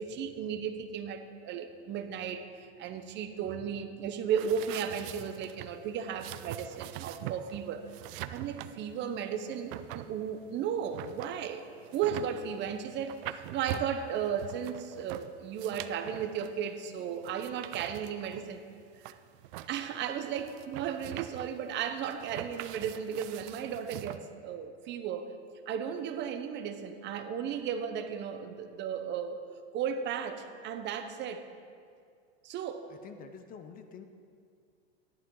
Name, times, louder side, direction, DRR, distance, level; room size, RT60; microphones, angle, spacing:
voice 1, 0.0-7.8 8.3-11.6 11.9-18.6 19.0-19.2 19.7-25.3 25.7-29.4 29.7-31.5 32.4-32.8, right 8 dB, 35° right, 8 dB, 0.9 m, -35 dB
sound 1, 4.4-24.2, right 14 dB, 55° right, 0.5 m, -43 dB
voice 2, 32.9-34.1, left 7 dB, 25° left, 8 dB, 0.6 m, -48 dB
13.5 x 11.5 x 3.9 m, 2.2 s
supercardioid pair, 130°, 33 cm